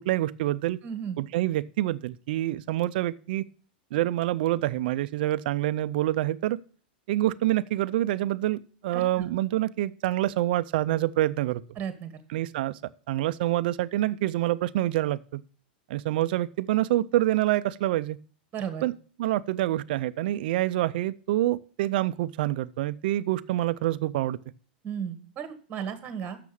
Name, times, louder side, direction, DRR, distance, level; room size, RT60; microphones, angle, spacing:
voice 1, 0.1-0.8 1.2-3.5 3.9-6.6 7.1-11.6 12.3-12.8 13.1-15.4 15.9-18.2 18.8-18.9 19.2-24.4, right 15 dB, 65° right, 15 dB, 0.4 m, -26 dB
voice 2, 0.8-1.2 8.9-9.2 11.8-12.2 18.5-18.8 24.8-26.4, right 8 dB, 30° right, 10 dB, 1.5 m, -34 dB
6.7 x 6.2 x 7.0 m, 0.42 s
hypercardioid pair, 115°, 5 cm